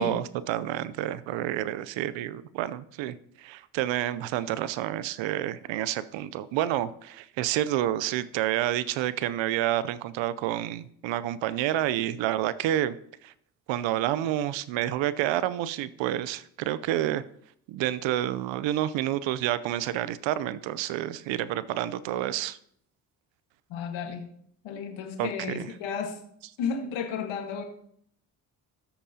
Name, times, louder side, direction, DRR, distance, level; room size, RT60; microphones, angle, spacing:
voice 1, 0.0-13.0 13.2-13.3 13.7-17.2 17.7-22.6 25.2-25.7, right 13 dB, 70° right, 0.7 m, -29 dB
voice 2, 23.7-24.3 24.6-26.2 26.6-27.6, left 6 dB, 70° left, 1.7 m, -33 dB
13.5 x 8.7 x 2.9 m
hypercardioid pair, 55°, 47 cm